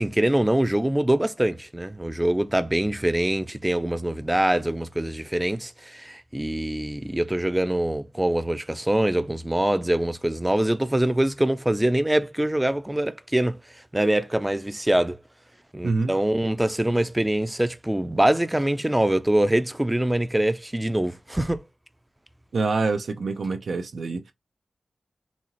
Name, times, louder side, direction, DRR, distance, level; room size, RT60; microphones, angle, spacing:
voice 1, 0.0-13.6 13.9-15.2 15.7-21.6, right 1 dB, 10° right, 0.4 m, -24 dB
voice 2, 22.5-24.3, right 3 dB, 80° right, 0.5 m, -26 dB
4.1 x 2.8 x 2.9 m
wide cardioid pair, 90°, 0 cm